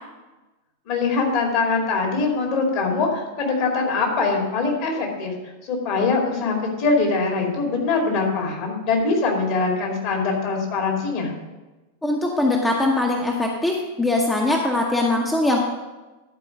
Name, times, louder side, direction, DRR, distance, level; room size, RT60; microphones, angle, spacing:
voice 1, 0.9-5.3 5.6-11.3, left 4 dB, 45° left, 1 dB, 2.4 m, -23 dB
voice 2, 12.0-15.6, left 2 dB, 10° left, 0 dB, 1.0 m, -21 dB
11.5 x 4.8 x 6.2 m, 1.1 s
figure-of-eight pair, 90°, 0 cm